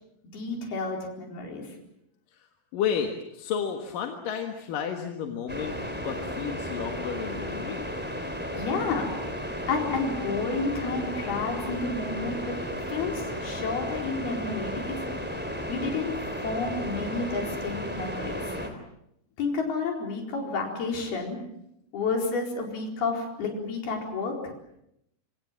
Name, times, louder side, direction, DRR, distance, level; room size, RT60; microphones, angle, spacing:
voice 1, 0.3-1.8 8.5-9.1 9.7-12.6 12.9-15.1 15.7-18.6 19.4-21.4 21.9-24.5, left 4 dB, 90° left, 2 dB, 6.3 m, -30 dB
voice 2, 2.7-5.7 6.0-7.9, left 7 dB, 65° left, 4 dB, 3.1 m, -32 dB
sound 1, 5.5-18.7, equal, 5° right, 2.9 m, -34 dB
26.0 x 26.0 x 7.5 m, 0.79 s
omnidirectional pair, 4.3 m